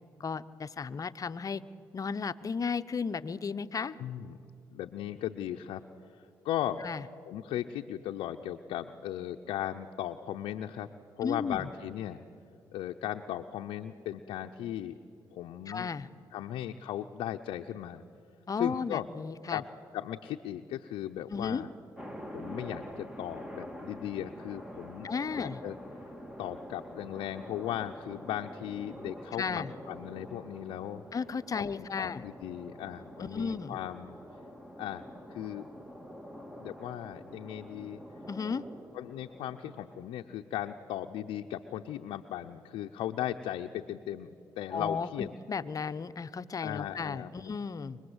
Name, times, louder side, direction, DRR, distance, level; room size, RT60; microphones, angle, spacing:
voice 1, 0.2-1.6 1.9-3.9 6.8-7.0 11.2-11.7 15.7-16.1 18.5-19.6 21.3-21.6 25.0-25.6 29.4-29.7 31.1-32.2 33.2-33.8 38.3-38.6 44.7-48.0, left 5 dB, 45° left, 12 dB, 0.9 m, -34 dB
voice 2, 4.0-4.4 4.7-5.8 6.1-6.8 7.3-10.9 11.2-12.2 12.7-15.0 15.3-15.9 16.3-18.0 18.6-19.1 19.5-19.6 19.9-21.7 22.3-25.1 25.4-25.8 26.4-31.0 31.5-34.1 34.8-35.0 35.3-35.7 36.6-38.0 38.9-45.3 46.6-47.5, left 12 dB, 85° left, 4 dB, 0.7 m, -37 dB
sound 1, 22.0-40.1, equal, 10° right, 2.2 m, -46 dB
24.5 x 20.0 x 8.1 m, 2.6 s
supercardioid pair, 60°, 9 cm